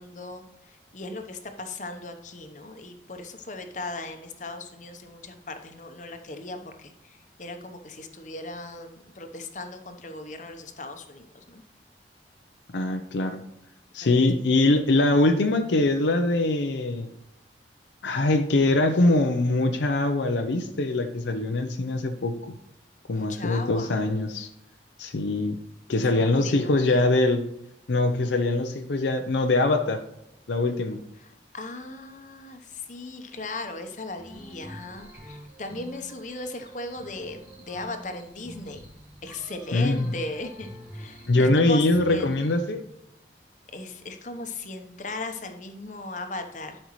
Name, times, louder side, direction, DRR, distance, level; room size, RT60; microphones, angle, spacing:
voice 1, 0.0-11.6 14.0-14.2 23.1-23.9 26.1-27.2 31.2-38.9 39.2-41.8 42.1-42.3 43.7-46.8, left 2 dB, 40° left, 6 dB, 0.9 m, -38 dB
voice 2, 12.7-13.4 13.9-17.1 18.0-22.3 23.1-24.5 25.0-25.6 25.9-27.4 27.9-30.0 30.5-31.0 39.7-40.1 41.3-42.8, left 2 dB, 80° left, 5 dB, 0.6 m, -23 dB
sound 1, 34.2-42.6, equal, 15° right, 2.3 m, -45 dB
12.0 x 5.4 x 3.1 m, 0.84 s
head